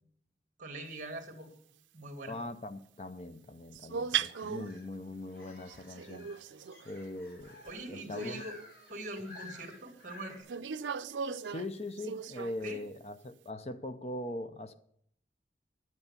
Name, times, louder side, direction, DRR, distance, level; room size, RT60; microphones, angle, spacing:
voice 1, 0.6-1.5 1.9-2.4 7.6-8.5 8.9-10.6 12.6-12.8, right 1 dB, 45° right, 2.1 m, -42 dB
voice 2, 2.3-6.3 6.8-7.6 7.9-8.4 11.4-14.7, left 1 dB, 35° left, 0.6 m, -41 dB
sound 1, 3.7-4.8 5.7-6.9 7.4-8.5 9.2-9.3 10.5-12.7, right 7 dB, 85° right, 0.5 m, -38 dB
sound 2, 4.3-10.4, left 2 dB, 55° left, 5.4 m, -53 dB
10.5 x 8.1 x 7.0 m
head